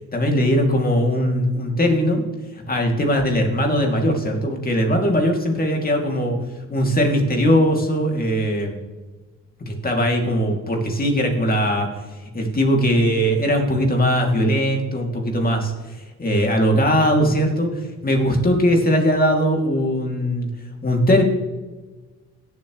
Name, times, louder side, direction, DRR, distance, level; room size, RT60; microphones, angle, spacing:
voice 1, 0.1-2.2 2.5-6.4 6.7-8.8 9.8-11.9 12.3-20.5 20.8-21.2, equal, 30° left, 2 dB, 2.8 m, -20 dB
17.0 x 7.9 x 3.2 m, 1.2 s
cardioid pair, 90°, 30 cm